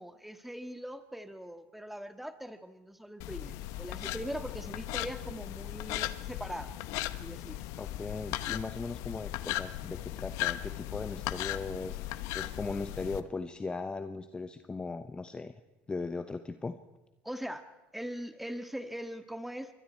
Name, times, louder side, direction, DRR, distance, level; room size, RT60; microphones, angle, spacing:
voice 1, 0.0-6.7 7.0-7.6 17.2-17.6 17.9-19.7, equal, 5° right, 9 dB, 1.7 m, -41 dB
sound 1, 3.2-13.2, left 15 dB, 70° left, 1.0 m, -37 dB
voice 2, 7.8-15.6 15.9-16.8, left 3 dB, 15° left, 10 dB, 0.9 m, -38 dB
26.5 x 23.0 x 4.6 m, 1.0 s
supercardioid pair, 110°, 5 cm